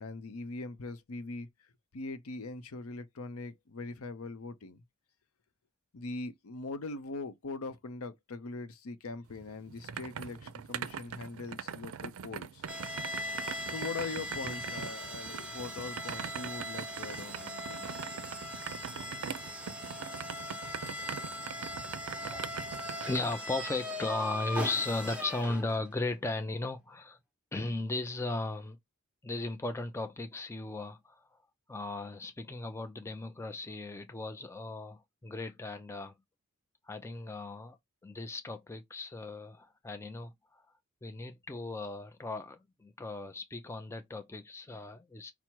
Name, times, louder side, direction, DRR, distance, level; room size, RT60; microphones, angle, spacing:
voice 1, 0.0-1.5 1.9-4.8 5.9-12.7 13.4-18.3, left 3 dB, 65° left, 0.6 m, -41 dB
sound 1, 9.3-23.3, right 7 dB, 65° right, 0.4 m, -42 dB
sound 2, 12.7-25.9, left 1 dB, 5° right, 0.8 m, -40 dB
voice 2, 23.1-27.2 27.5-28.8 29.2-31.4 31.7-36.1 36.8-37.8 38.0-40.6 41.0-45.3, left 2 dB, 10° left, 0.4 m, -36 dB
5.7 x 2.1 x 4.5 m
head